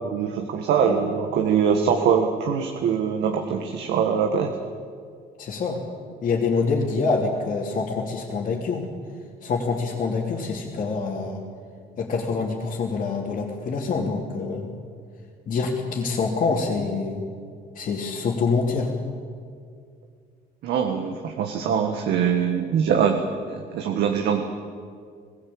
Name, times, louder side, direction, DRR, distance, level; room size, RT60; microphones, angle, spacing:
voice 1, 0.0-4.5 20.6-23.2 23.5-24.4, right 7 dB, 75° right, 4 dB, 1.6 m, -23 dB
voice 2, 5.4-5.8 6.2-8.8 9.4-11.4 12.0-14.7 15.5-17.2 17.7-18.9, left 4 dB, 50° left, -6 dB, 3.3 m, -26 dB
20.5 x 16.5 x 8.8 m, 2.1 s
cardioid pair, 110°, 17 cm